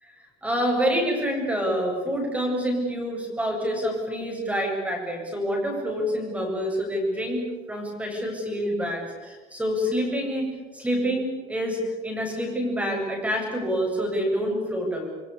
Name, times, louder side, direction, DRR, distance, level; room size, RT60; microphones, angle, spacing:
voice 1, 0.4-7.4 7.7-10.5 10.7-15.1, equal, 10° right, 1 dB, 7.8 m, -27 dB
29.0 x 22.5 x 8.6 m, 1.3 s
cardioid pair, 160°, 17 cm